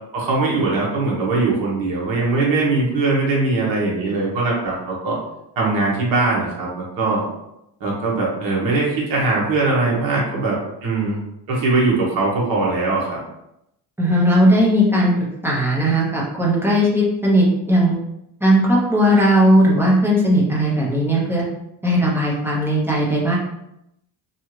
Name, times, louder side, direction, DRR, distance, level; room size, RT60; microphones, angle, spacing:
voice 1, 0.1-5.2 5.6-7.3 7.8-11.2 11.5-13.2, right 3 dB, 55° right, -4 dB, 1.0 m, -21 dB
voice 2, 14.0-17.9 18.4-21.4 21.8-23.4, equal, 5° right, -5 dB, 0.5 m, -17 dB
2.7 x 2.3 x 3.0 m, 0.83 s
cardioid pair, 155°, 41 cm